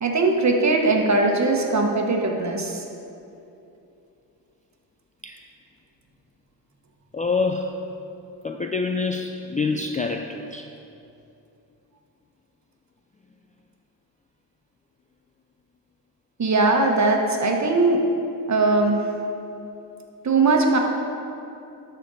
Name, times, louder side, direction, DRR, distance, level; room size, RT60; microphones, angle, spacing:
voice 1, 0.0-2.8 16.4-18.0 18.5-19.0 20.2-20.8, right 3 dB, 35° right, 2 dB, 1.3 m, -20 dB
voice 2, 7.1-7.7 8.4-10.7 20.7-20.8, left 4 dB, 20° left, 3 dB, 0.4 m, -26 dB
12.5 x 4.4 x 4.1 m, 2.7 s
supercardioid pair, 60°, 46 cm